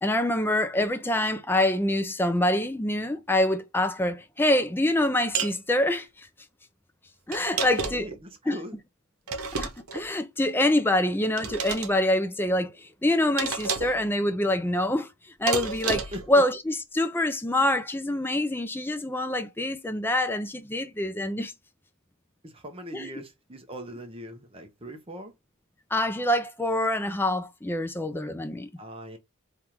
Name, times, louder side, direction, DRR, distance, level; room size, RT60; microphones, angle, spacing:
voice 1, 0.0-6.3 7.3-8.1 8.5-8.6 9.6-15.1 15.4-21.5 22.9-23.1 25.9-28.7, left 1 dB, 10° left, 0.5 m, -25 dB
sound 1, 5.3-5.6 7.3-8.2 9.3-10.0 11.4-11.9 13.4-14.0 15.5-16.3, right 5 dB, 70° right, 1.0 m, -30 dB
voice 2, 7.5-8.8 16.1-16.2 22.4-25.3 28.8-29.2, equal, 25° right, 0.7 m, -41 dB
3.4 x 2.4 x 4.3 m
head